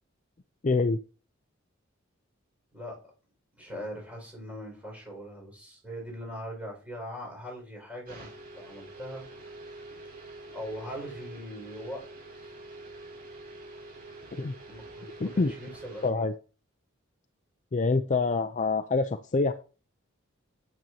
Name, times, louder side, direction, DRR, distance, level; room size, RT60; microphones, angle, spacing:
voice 1, 0.6-1.0 14.4-14.5 15.2-15.5 16.0-16.3 17.7-19.5, left 3 dB, 35° left, 8 dB, 0.5 m, -26 dB
voice 2, 3.6-9.2 10.5-12.1 12.3-12.5 14.7-16.3, equal, 5° right, -1 dB, 5.2 m, -41 dB
sound 1, 8.0-16.1, right 2 dB, 45° right, 5.7 m, -46 dB
9.1 x 8.7 x 2.8 m, 0.35 s
head